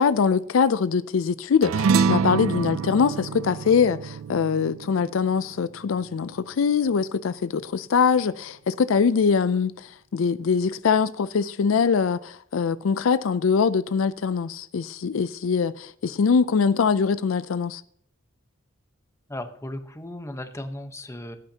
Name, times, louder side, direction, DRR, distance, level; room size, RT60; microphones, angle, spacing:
voice 1, 0.0-17.8, left 6 dB, 70° left, 0.4 m, -23 dB
sound 1, 1.6-6.3, right 5 dB, 80° right, 0.4 m, -26 dB
voice 2, 19.3-21.4, left 1 dB, 15° left, 1.0 m, -36 dB
17.0 x 8.9 x 2.9 m
head